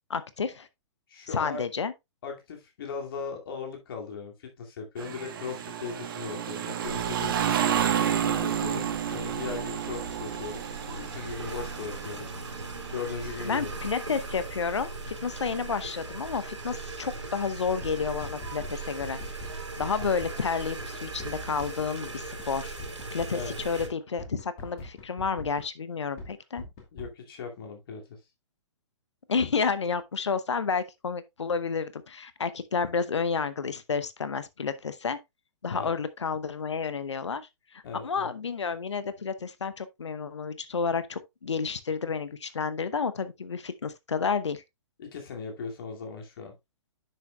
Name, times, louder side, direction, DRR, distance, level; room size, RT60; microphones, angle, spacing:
voice 1, 0.1-0.7 1.3-1.9 13.4-19.2 19.8-22.7 23.1-26.6 29.3-35.2 35.6-44.6, left 5 dB, 70° left, 0.8 m, -30 dB
voice 2, 1.1-1.6 2.2-7.4 8.0-12.3 12.9-13.7 23.3-23.6 26.9-28.0 35.7-35.9 37.8-38.3 45.0-46.5, left 5 dB, 50° left, 2.3 m, -38 dB
sound 1, 5.0-14.9 15.3-16.8 17.4-17.5 17.8-18.6 19.5-21.0 21.5-21.7, right 9 dB, 50° right, 1.1 m, -32 dB
sound 2, 6.8-23.9, right 3 dB, 80° right, 2.7 m, -39 dB
sound 3, 17.6-20.5 20.8-20.9 21.2-22.1 22.4-22.5 22.8-25.7 26.0-27.1, left 2 dB, 35° left, 2.2 m, -42 dB
10.0 x 6.4 x 2.3 m
figure-of-eight pair, 120°, 15 cm